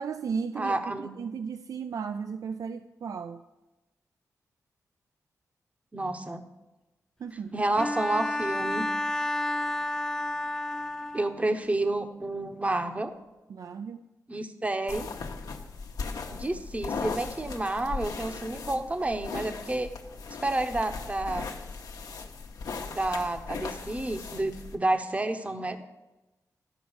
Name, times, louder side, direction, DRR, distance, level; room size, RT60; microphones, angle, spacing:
voice 1, 0.0-3.4 7.2-7.5 13.5-14.0, right 6 dB, 70° right, 10 dB, 0.4 m, -35 dB
voice 2, 0.6-1.1 5.9-6.4 7.5-8.9 11.1-13.1 14.3-15.1 16.3-19.9 20.4-21.5 22.8-25.8, right 2 dB, 20° right, 8 dB, 0.9 m, -30 dB
Bowed string instrument, 7.8-11.5, left 1 dB, 10° left, 0.5 m, -31 dB
sound 1, 14.9-24.8, left 4 dB, 80° left, 1.0 m, -38 dB
12.0 x 5.1 x 7.1 m, 1.1 s
cardioid pair, 70°, 6 cm